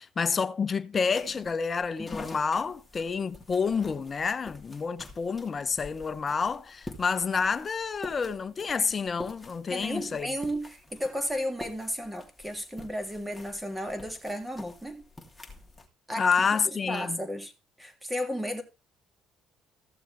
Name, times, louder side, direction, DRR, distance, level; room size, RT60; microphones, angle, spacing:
voice 1, 0.0-10.3 16.2-17.2, left 5 dB, 35° left, 0.8 m, -29 dB
sound 1, 1.1-15.9, left 2 dB, 10° left, 3.1 m, -47 dB
voice 2, 9.7-15.0 16.1-16.5 16.8-17.5 17.8-18.6, equal, 10° right, 3.1 m, -33 dB
15.0 x 7.1 x 3.4 m
supercardioid pair, 70°, 0 cm